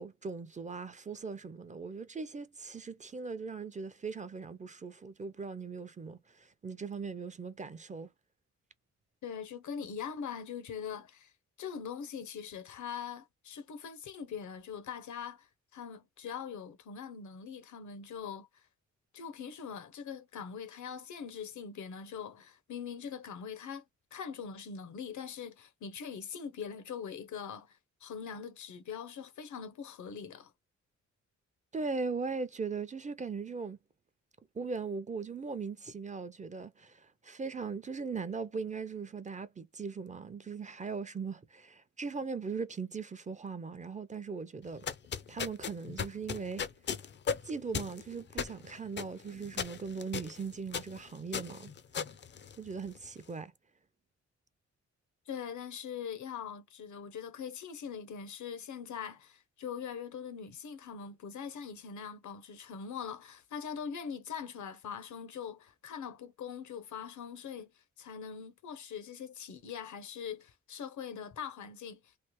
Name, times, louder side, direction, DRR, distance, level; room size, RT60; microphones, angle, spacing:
voice 1, 0.0-8.1 31.7-33.8 34.5-44.9 45.3-46.6 47.4-51.7 52.6-53.5, right 5 dB, 25° right, 0.5 m, -39 dB
voice 2, 9.2-11.3 11.6-18.5 19.1-23.8 24.1-30.5 55.3-72.2, left 7 dB, 75° left, 0.8 m, -42 dB
sound 1, 44.7-53.1, left 7 dB, 40° left, 0.4 m, -38 dB
3.2 x 2.0 x 2.9 m
cardioid pair, 100°, 30 cm